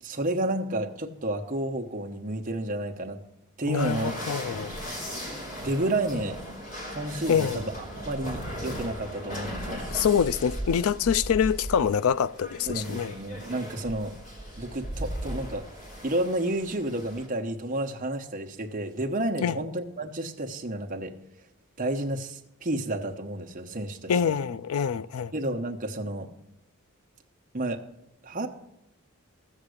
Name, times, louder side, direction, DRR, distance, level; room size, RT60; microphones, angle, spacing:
voice 1, 0.0-3.2 3.6-4.1 5.6-6.4 6.9-7.7 8.1-9.9 12.7-14.1 14.6-15.7 16.0-21.2 21.8-24.3 25.3-26.3 27.5-27.8 28.2-28.5, right 1 dB, 40° right, 1.0 m, -31 dB
voice 2, 3.7-4.7 7.3-7.6 9.9-13.2 19.4-19.6 24.1-25.3, left 7 dB, 90° left, 0.4 m, -25 dB
sound 1, 3.8-17.3, equal, 40° left, 3.3 m, -37 dB
14.0 x 7.3 x 6.5 m
head